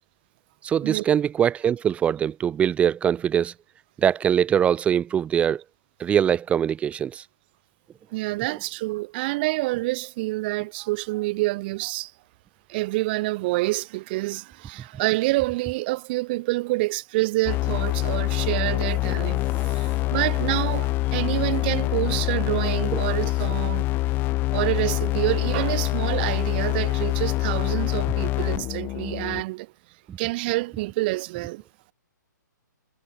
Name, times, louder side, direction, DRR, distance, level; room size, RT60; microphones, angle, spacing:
voice 1, 0.6-3.5 4.0-5.6 6.0-7.2 22.9-23.0 30.1-30.2, right 8 dB, 10° right, 1.6 m, -22 dB
voice 2, 8.1-12.1 12.7-23.9 24.5-29.7 30.2-31.6, right 21 dB, 30° right, 7.0 m, -27 dB
sound 1, 17.5-29.4, left 19 dB, 20° left, 1.2 m, -25 dB
figure-of-eight pair, 125°, 10 cm